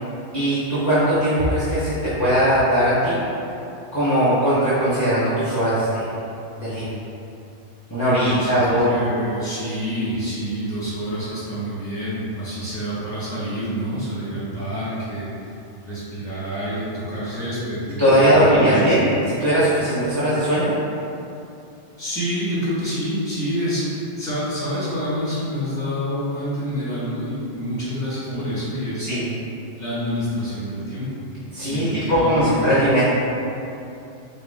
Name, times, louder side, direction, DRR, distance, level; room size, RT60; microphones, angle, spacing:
voice 1, 0.3-3.2 3.9-6.1 6.6-6.9 7.9-9.0 18.0-19.1 19.4-20.7 28.3-28.4 29.0-29.3 31.5-33.0, equal, 20° left, -11 dB, 0.6 m, -19 dB
voice 2, 8.0-15.5 15.8-19.2 22.0-29.1 29.8-31.2 31.6-32.8, equal, 5° left, -11 dB, 1.3 m, -27 dB
5.0 x 2.2 x 3.5 m, 2.8 s
omnidirectional pair, 1.2 m